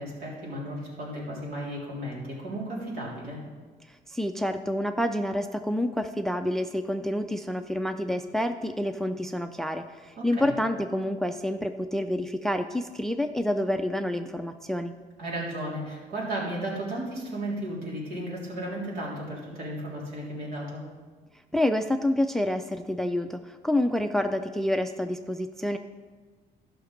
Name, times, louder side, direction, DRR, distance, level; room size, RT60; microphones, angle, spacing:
voice 1, 0.0-3.4 10.2-10.5 15.2-20.8, right 1 dB, 70° right, -4 dB, 3.7 m, -34 dB
voice 2, 4.1-14.9 21.5-25.8, left 1 dB, ahead, 8 dB, 0.4 m, -28 dB
12.5 x 6.0 x 5.2 m, 1.4 s
cardioid pair, 110°, 17 cm